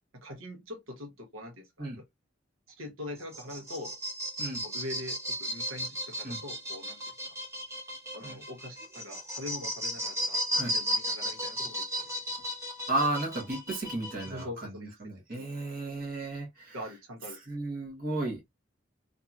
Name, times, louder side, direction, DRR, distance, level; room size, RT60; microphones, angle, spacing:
voice 1, 0.1-2.1 2.8-4.0 4.6-7.0 8.1-12.1 14.2-14.9 15.3-15.5 16.7-17.4, left 1 dB, 80° right, 0.9 m, -43 dB
sound 1, 3.2-14.4, equal, 15° right, 0.9 m, -35 dB
voice 2, 12.9-16.7 17.5-18.4, right 2 dB, 45° right, 1.0 m, -34 dB
2.8 x 2.6 x 2.3 m
head